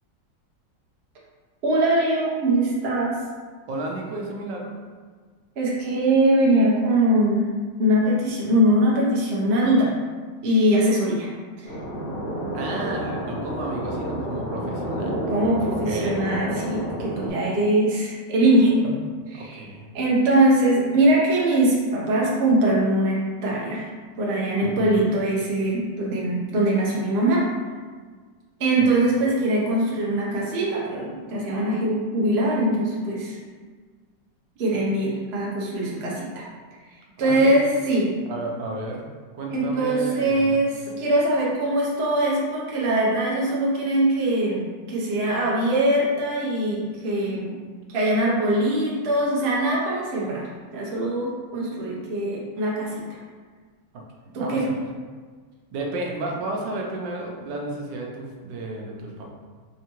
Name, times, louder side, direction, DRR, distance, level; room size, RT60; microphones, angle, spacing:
voice 1, 1.6-3.2 5.6-7.5 7.8-9.9 10.4-11.3 11.6-11.7 15.3-18.9 19.3-19.6 19.9-23.9 24.2-27.4 28.6-33.4 34.6-36.4 37.2-38.1 39.5-47.6 47.9-50.4 50.7-53.2 54.3-54.7, right 1 dB, 45° right, -5 dB, 0.9 m, -22 dB
voice 2, 3.7-4.7 12.5-15.3 15.8-16.2 19.3-19.9 24.6-25.1 28.8-29.0 37.2-37.6 38.3-40.6 40.9-41.0 54.3-54.9 55.7-59.3, right 2 dB, 90° right, 0 dB, 1.4 m, -32 dB
sound 1, 11.7-17.3, right 1 dB, 90° left, 1.6 m, -30 dB
4.5 x 2.8 x 2.9 m, 1.5 s
omnidirectional pair, 1.9 m